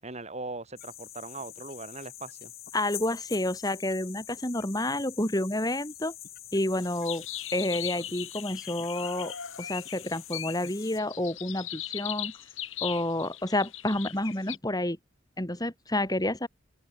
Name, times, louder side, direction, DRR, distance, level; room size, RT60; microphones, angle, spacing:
voice 1, 0.0-2.5, right 2 dB, 35° right, 6.5 m, -40 dB
sound 1, 0.8-11.0, left 12 dB, 50° left, 5.0 m, -45 dB
voice 2, 2.7-6.1 6.5-7.3 7.5-12.3 12.8-15.0 15.4-16.5, left 1 dB, 20° left, 5.7 m, -29 dB
sound 2, 6.8-14.6, left 12 dB, 85° left, 7.9 m, -39 dB
open air
head